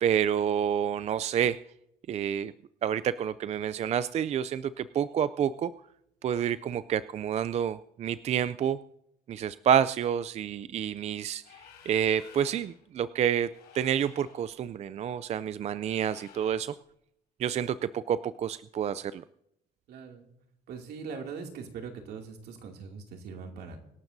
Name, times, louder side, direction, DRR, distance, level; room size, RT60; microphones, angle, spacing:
voice 1, 0.0-1.6 2.1-2.5 2.8-5.7 6.2-8.8 9.3-11.4 11.9-13.5 13.7-16.7 17.4-19.2, right 9 dB, 40° right, 15 dB, 0.4 m, -28 dB
sound 1, 11.4-12.8 13.5-14.5 15.8-16.7, left 8 dB, 70° left, 4.9 m, -53 dB
voice 2, 19.9-20.3 20.7-23.8, right 5 dB, 70° right, 2 dB, 2.5 m, -41 dB
25.0 x 12.0 x 2.7 m, 0.79 s
cardioid pair, 110°, 17 cm